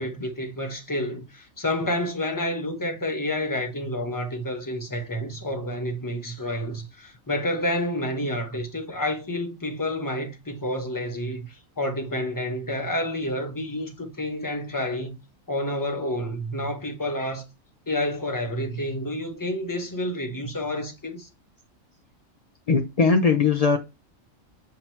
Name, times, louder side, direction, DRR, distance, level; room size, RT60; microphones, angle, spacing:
voice 1, 0.0-11.5 11.8-15.2 15.5-17.4 17.9-21.3, left 1 dB, 15° left, 0.8 m, -29 dB
voice 2, 22.7-23.8, left 4 dB, 50° left, 0.5 m, -20 dB
7.5 x 2.9 x 4.4 m
omnidirectional pair, 1.4 m